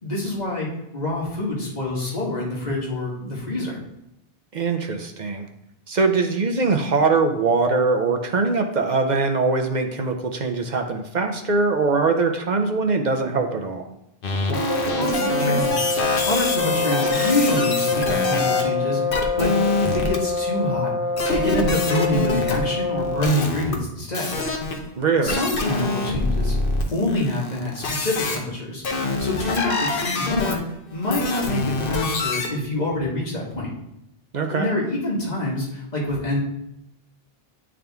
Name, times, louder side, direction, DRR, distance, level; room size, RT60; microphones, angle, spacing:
voice 1, 0.0-3.8 15.0-15.7 16.2-19.5 19.8-20.9 21.3-24.4 25.2-26.6 26.9-28.8 29.2-30.6 30.9-33.7 34.5-36.4, left 1 dB, 45° left, -4 dB, 1.7 m, -26 dB
voice 2, 4.5-5.5 5.9-13.9 25.0-25.4 34.3-34.7, right 4 dB, 50° right, 5 dB, 0.7 m, -22 dB
sound 1, 14.2-18.6 19.1-20.2 21.2-23.7 24.1-24.9 25.3-28.4 28.8-32.5, left 3 dB, 60° left, 1.0 m, -25 dB
sound 2, 14.5-23.4, left 3 dB, 85° left, 1.3 m, -25 dB
9.0 x 3.7 x 3.5 m, 0.84 s
omnidirectional pair, 1.0 m